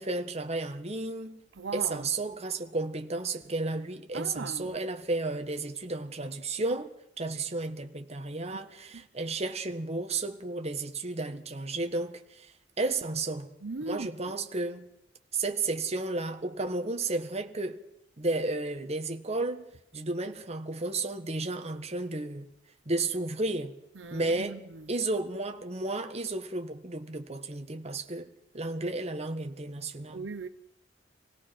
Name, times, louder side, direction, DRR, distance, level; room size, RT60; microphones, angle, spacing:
voice 1, 0.0-1.4 1.7-12.5 12.8-13.5 13.8-14.9 15.3-17.8 18.2-19.6 19.9-22.5 22.8-23.7 24.1-24.6 24.9-30.3, right 2 dB, 35° right, 1.6 m, -33 dB
voice 2, 1.6-2.1 4.1-4.7 8.9-9.0 13.6-14.1 24.0-24.9 30.1-30.5, right 3 dB, 75° right, 0.8 m, -38 dB
26.0 x 17.5 x 6.1 m
head